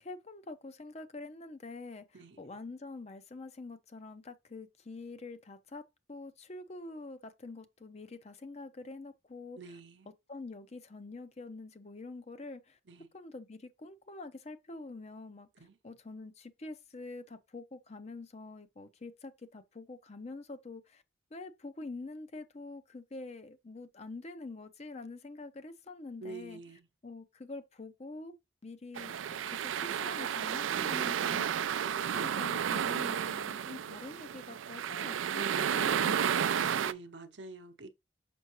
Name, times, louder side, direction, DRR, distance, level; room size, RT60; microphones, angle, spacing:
voice 1, 0.0-9.8 10.3-12.8 13.1-21.0 21.3-26.6 27.0-28.4 28.6-36.9, left 3 dB, 35° left, 0.6 m, -46 dB
voice 2, 9.6-10.1 12.9-13.1 15.6-15.8 26.2-26.9 35.3-35.9 36.8-37.9, right 3 dB, 65° right, 0.8 m, -45 dB
sound 1, 29.0-36.9, right 8 dB, 85° right, 0.4 m, -32 dB
6.1 x 5.4 x 3.0 m
head